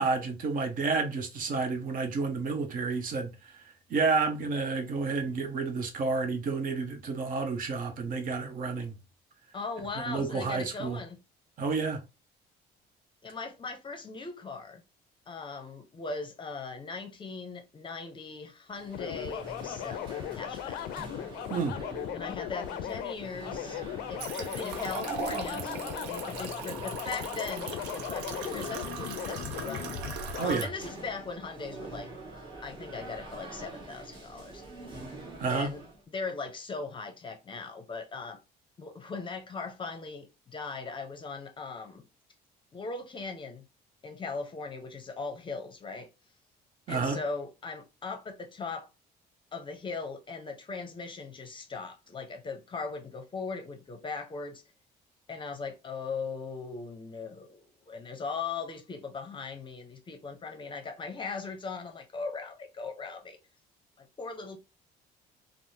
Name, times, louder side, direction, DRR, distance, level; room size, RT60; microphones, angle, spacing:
voice 1, 0.0-3.5 3.9-8.9 10.1-11.0 11.6-12.0 21.5-21.8 30.4-30.7 35.4-35.7 46.9-47.2, right 4 dB, 55° right, 0.9 m, -30 dB
voice 2, 9.5-11.2 13.2-14.8 15.3-20.9 22.1-23.8 24.1-29.9 30.4-32.1 32.6-34.6 35.5-38.4 38.8-42.0 42.7-43.6 44.0-46.1 46.9-48.9 49.5-54.6 55.3-63.4 64.0-64.6, left 4 dB, 30° left, 0.6 m, -39 dB
sound 1, 18.7-36.0, right 2 dB, 30° right, 1.5 m, -45 dB
sound 2, 18.9-30.6, left 11 dB, 80° left, 0.4 m, -38 dB
sound 3, 24.2-30.6, right 7 dB, 90° right, 0.6 m, -40 dB
3.2 x 2.0 x 2.6 m
cardioid pair, 110°, 17 cm